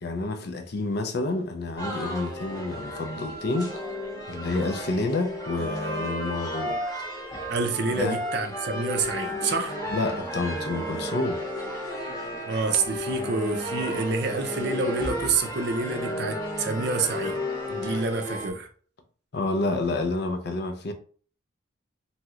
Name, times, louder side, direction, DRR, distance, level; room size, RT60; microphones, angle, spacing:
voice 1, 0.0-3.7 4.3-6.8 7.9-8.2 9.9-11.4 19.3-20.9, left 2 dB, 50° left, 0.5 m, -29 dB
sound 1, 1.8-18.5, equal, 20° left, 0.8 m, -33 dB
voice 2, 7.5-9.8 12.5-17.4 17.7-18.7, right 4 dB, 55° right, 0.5 m, -28 dB
3.0 x 2.8 x 2.4 m
head